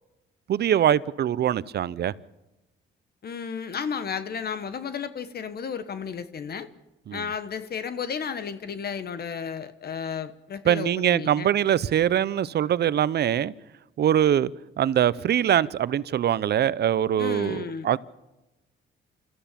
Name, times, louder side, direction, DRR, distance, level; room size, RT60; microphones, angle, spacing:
voice 1, 0.5-2.1 7.1-7.2 10.7-13.5 14.0-14.5 14.8-18.0, right 10 dB, 55° right, 0.7 m, -23 dB
voice 2, 3.2-6.7 7.1-11.5 17.2-17.9, left 6 dB, 50° left, 1.2 m, -33 dB
25.5 x 14.5 x 7.5 m
cardioid pair, 90°, 20 cm